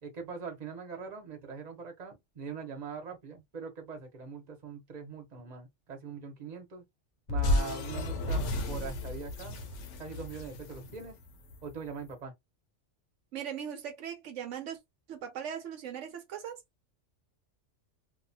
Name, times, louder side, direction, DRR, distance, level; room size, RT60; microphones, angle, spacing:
voice 1, 0.0-6.8 7.3-9.6 10.0-11.1 11.6-12.3, right 5 dB, 40° right, 1.0 m, -42 dB
sound 1, 7.3-11.7, left 1 dB, 75° left, 0.9 m, -32 dB
voice 2, 13.3-14.8 15.1-16.6, right 8 dB, 80° right, 1.0 m, -39 dB
2.6 x 2.3 x 2.7 m
omnidirectional pair, 1.3 m